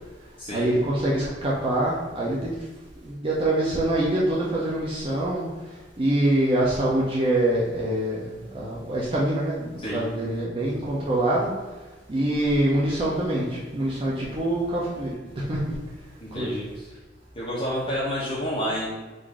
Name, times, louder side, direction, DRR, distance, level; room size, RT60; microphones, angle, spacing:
voice 1, 0.5-2.5 3.0-5.4 6.0-8.3 8.5-11.5 12.1-15.2 15.5-15.7 16.4-16.5, right 1 dB, 30° right, -5 dB, 0.7 m, -24 dB
voice 2, 16.2-16.9 17.3-18.9, equal, 30° left, -8 dB, 1.0 m, -29 dB
3.9 x 2.7 x 4.7 m, 1.2 s
head